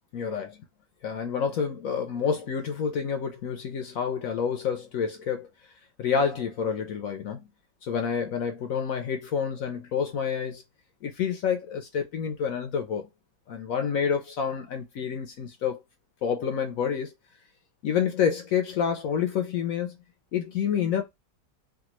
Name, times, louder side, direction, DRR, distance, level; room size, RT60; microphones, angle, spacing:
voice 1, 0.1-0.5 1.0-5.7 6.0-7.5 7.8-10.6 11.0-13.1 13.5-15.8 16.2-17.1 17.8-20.0 20.3-21.0, left 7 dB, 70° left, 0.8 m, -28 dB
3.5 x 2.3 x 2.9 m
omnidirectional pair, 1.9 m